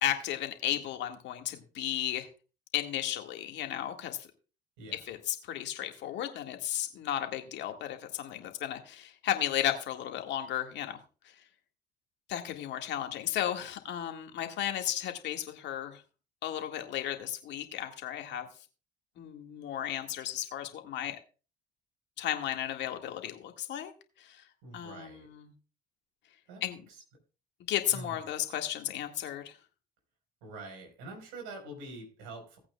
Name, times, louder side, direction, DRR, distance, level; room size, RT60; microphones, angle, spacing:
voice 1, 0.0-2.3 2.7-4.3 5.1-11.0 12.3-16.0 16.4-18.5 19.2-21.2 22.2-23.9 24.2-24.4 24.7-25.5 26.6-26.8 27.7-29.5, left 11 dB, 60° left, 5 dB, 1.8 m, -34 dB
voice 2, 24.6-25.3 26.5-27.0 27.9-28.2 30.4-32.6, right 2 dB, 75° right, 3 dB, 4.4 m, -45 dB
17.5 x 8.6 x 2.3 m, 0.34 s
hypercardioid pair, 55°, 20 cm